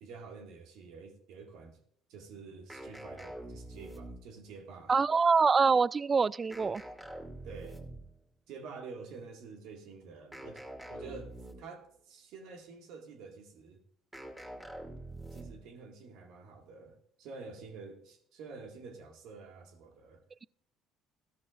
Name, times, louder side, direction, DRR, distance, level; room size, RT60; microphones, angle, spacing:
voice 1, 0.0-1.8 2.1-4.9 7.4-7.8 8.5-10.6 10.9-13.8 15.3-20.2, right 4 dB, 70° right, 2.0 m, -48 dB
sound 1, 2.7-4.5 6.5-8.2 10.3-11.9 14.1-15.7, right 1 dB, 10° right, 2.4 m, -45 dB
voice 2, 4.9-6.8, right 5 dB, 35° right, 0.3 m, -25 dB
15.0 x 12.5 x 2.5 m
hypercardioid pair, 60°, 0 cm